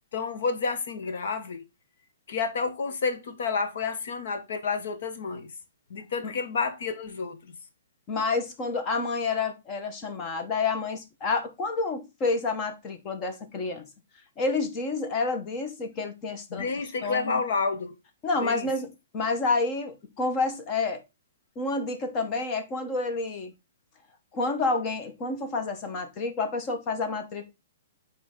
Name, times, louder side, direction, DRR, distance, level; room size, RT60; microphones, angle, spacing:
voice 1, 0.1-1.6 2.3-5.5 5.9-7.5 16.5-17.9 18.4-18.7, left 4 dB, 60° left, 1.2 m, -30 dB
voice 2, 8.1-13.9 14.4-16.7 17.0-17.4 18.2-21.0 21.6-23.5 24.3-27.5, left 3 dB, 20° left, 0.9 m, -29 dB
9.3 x 3.2 x 3.7 m
hypercardioid pair, 170°, 0 cm